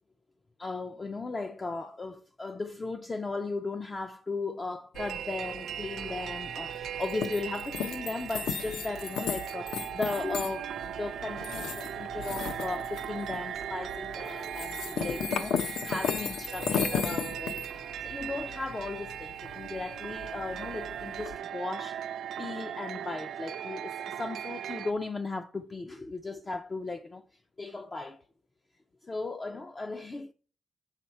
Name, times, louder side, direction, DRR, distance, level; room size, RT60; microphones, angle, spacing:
voice 1, 0.6-22.0 22.4-27.3 27.6-28.2 29.0-30.3, left 3 dB, 20° left, 0.3 m, -36 dB
sound 1, 4.9-21.4, left 7 dB, 75° left, 0.6 m, -36 dB
sound 2, 5.0-24.9, right 9 dB, 70° right, 0.4 m, -38 dB
7.6 x 5.7 x 4.3 m
wide cardioid pair, 175°, 0 cm